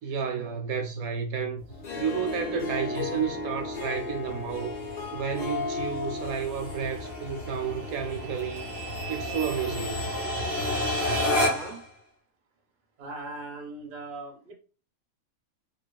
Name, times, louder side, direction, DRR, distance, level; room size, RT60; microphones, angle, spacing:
voice 1, 0.0-1.7 2.0-10.1, right 6 dB, 75° right, 1.0 m, -31 dB
sound 1, 1.6-11.9, left 1 dB, 15° left, 0.6 m, -32 dB
Harp, 1.7-9.1, left 3 dB, 75° left, 0.4 m, -36 dB
voice 2, 11.3-11.8 13.0-14.5, right 2 dB, 45° right, 0.7 m, -39 dB
2.8 x 2.3 x 2.2 m
omnidirectional pair, 1.5 m